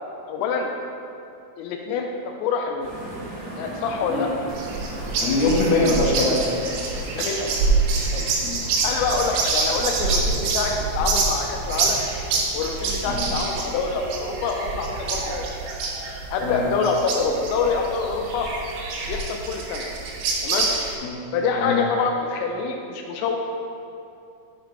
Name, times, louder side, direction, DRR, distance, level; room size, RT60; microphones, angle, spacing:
voice 1, 0.3-0.7 1.6-2.9 3.6-4.3 7.1-7.6 8.1-8.3 8.8-12.0 12.5-15.5 16.3-18.5 19.1-19.9 20.4-20.7 21.3-23.4, left 4 dB, 85° left, 2 dB, 3.2 m, -26 dB
sound 1, 2.8-12.5, right 1 dB, 55° right, 1.7 m, -38 dB
sound 2, 4.5-21.0, right 3 dB, 85° right, 3.5 m, -26 dB
voice 2, 5.2-6.4 8.4-8.5 13.1-13.2 16.4-16.6 21.0-21.2 21.6-21.8, left 3 dB, 70° left, -4 dB, 2.7 m, -22 dB
7.6 x 5.0 x 4.6 m, 2.5 s
omnidirectional pair, 5.9 m